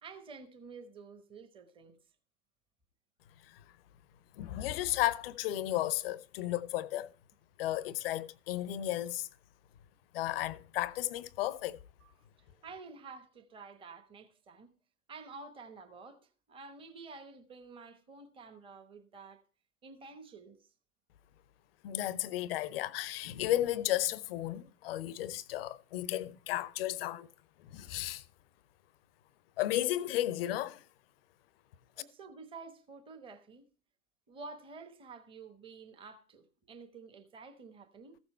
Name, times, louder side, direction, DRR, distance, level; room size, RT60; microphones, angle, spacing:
voice 1, 0.0-2.0 12.0-12.1 12.4-14.7 15.1-19.4 19.8-20.7 31.9-33.7 34.3-38.2, right 4 dB, 10° right, 1.0 m, -50 dB
voice 2, 4.4-7.1 7.6-9.3 10.1-11.8 21.8-27.3 27.6-28.2 29.6-30.8, left 14 dB, 40° left, 0.7 m, -34 dB
14.5 x 7.1 x 4.3 m
figure-of-eight pair, 115°, 47 cm